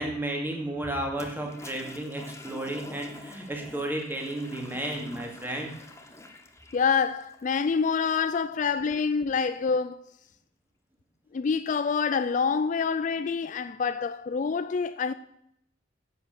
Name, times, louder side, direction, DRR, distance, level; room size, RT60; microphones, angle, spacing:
voice 1, 0.0-5.7, right 1 dB, 10° right, 2.4 m, -33 dB
Toilet flush, 1.1-8.3, left 1 dB, 15° left, 1.0 m, -47 dB
voice 2, 6.7-10.0 11.3-15.1, left 5 dB, 40° left, 0.3 m, -26 dB
10.0 x 7.8 x 6.5 m
head